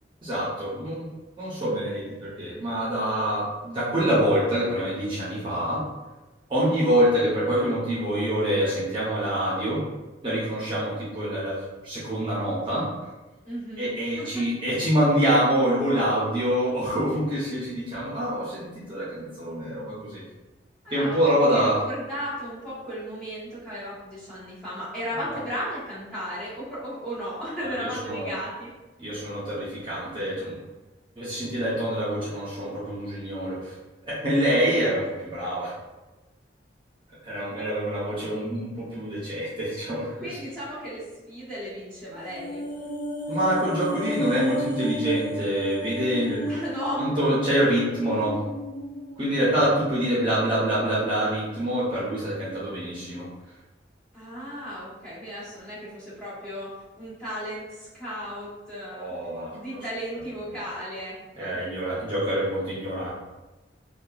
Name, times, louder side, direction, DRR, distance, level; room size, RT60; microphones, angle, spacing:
voice 1, 0.2-5.8 6.5-9.8 10.2-11.5 11.8-12.8 13.8-20.2 20.9-21.8 25.3-25.4 27.6-28.3 29.0-30.5 31.2-33.7 34.2-35.7 37.2-40.1 43.3-46.4 47.0-48.4 49.2-53.3 58.9-59.6 61.4-63.1, equal, 30° right, -9 dB, 0.7 m, -26 dB
voice 2, 13.4-14.4 20.8-28.7 40.2-42.6 46.5-47.0 54.1-59.1 59.5-61.6, equal, 5° left, -11 dB, 1.2 m, -35 dB
sound 1, 42.1-50.6 50.9-51.0, equal, 50° left, 0.5 m, -33 dB
2.7 x 2.3 x 2.3 m, 1.1 s
head